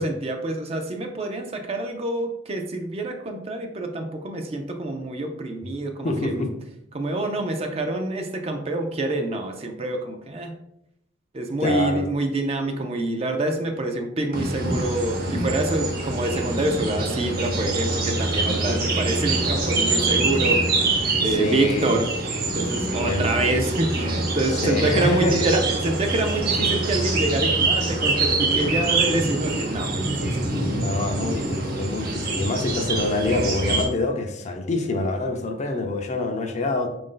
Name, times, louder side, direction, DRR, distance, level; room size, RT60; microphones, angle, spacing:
voice 1, 0.0-6.5 6.9-10.5 11.3-20.6 21.2-22.1 22.5-30.5, right 2 dB, 30° right, 5 dB, 0.4 m, -26 dB
voice 2, 6.0-6.5 11.6-12.1 21.2-21.9 23.0-23.2 24.5-25.4 30.6-36.9, left 2 dB, 35° left, 4 dB, 0.5 m, -26 dB
sound 1, 14.3-33.8, right 2 dB, 50° right, 0.8 m, -25 dB
4.7 x 2.6 x 3.7 m, 0.80 s
head